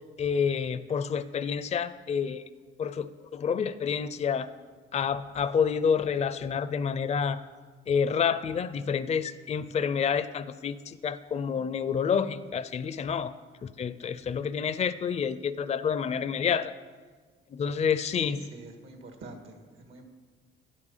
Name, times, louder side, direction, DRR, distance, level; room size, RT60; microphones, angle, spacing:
voice 1, 0.0-2.4 2.8-4.5 4.9-7.4 7.9-13.3 13.6-16.7 17.5-18.4, left 6 dB, 35° left, 13 dB, 0.5 m, -28 dB
voice 2, 18.1-20.1, right 2 dB, 80° right, 4 dB, 1.8 m, -46 dB
11.5 x 8.3 x 5.5 m, 1.4 s
cardioid pair, 90°, 20 cm